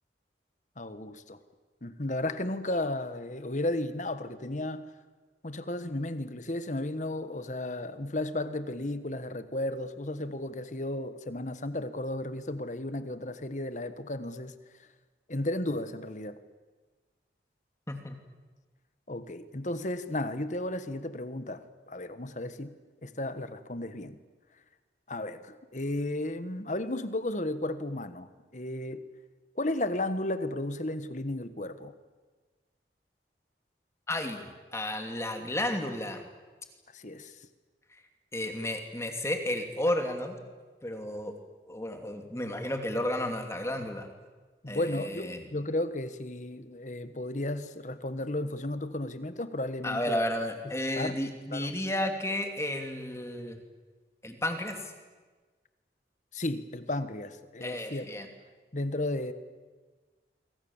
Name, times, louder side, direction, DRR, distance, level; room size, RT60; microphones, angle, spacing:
voice 1, 0.8-1.4 1.8-4.9 5.4-14.9 15.3-16.4 19.1-22.7 23.0-24.2 25.1-29.0 29.5-31.9 36.9-37.5 44.6-50.2 50.6-51.2 51.5-51.8 56.3-58.1 58.7-59.3, left 1 dB, 45° left, 11 dB, 1.4 m, -34 dB
voice 2, 34.1-36.2 38.3-40.4 40.8-41.3 41.7-44.1 44.7-45.4 49.8-53.6 54.2-54.9 57.6-58.3, left 1 dB, 15° left, 5 dB, 2.6 m, -32 dB
26.5 x 24.5 x 7.3 m, 1.4 s
head